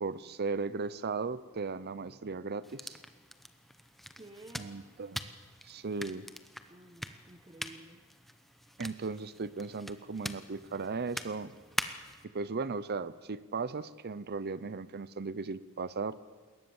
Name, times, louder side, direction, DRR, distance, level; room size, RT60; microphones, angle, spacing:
voice 1, 0.0-3.0 4.6-5.2 5.6-6.3 8.8-11.5 12.3-16.2, right 4 dB, 45° right, 17 dB, 0.6 m, -36 dB
sound 1, 2.6-12.2, equal, ahead, 0.8 m, -44 dB
voice 2, 4.2-5.0 6.7-8.0, right 2 dB, 20° right, 6 dB, 1.0 m, -53 dB
21.0 x 18.5 x 7.2 m, 1.5 s
head